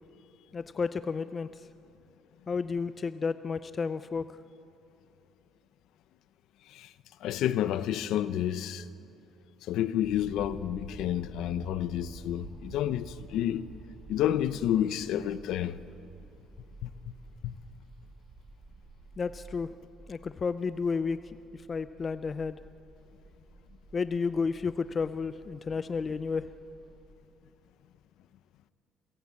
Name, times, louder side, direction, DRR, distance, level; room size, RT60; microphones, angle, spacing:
voice 1, 0.5-1.5 2.5-4.3 19.2-19.7 20.1-21.2 21.7-22.6 23.9-26.4, left 5 dB, 25° left, 0.4 m, -31 dB
voice 2, 7.2-8.8 9.7-13.7 14.1-15.8 16.8-16.9 17.4-17.5, left 11 dB, 65° left, 0.8 m, -30 dB
sound 1, 10.0-27.1, right 2 dB, 40° right, 5.3 m, -51 dB
28.0 x 16.5 x 8.5 m
cardioid pair, 170°, 0 cm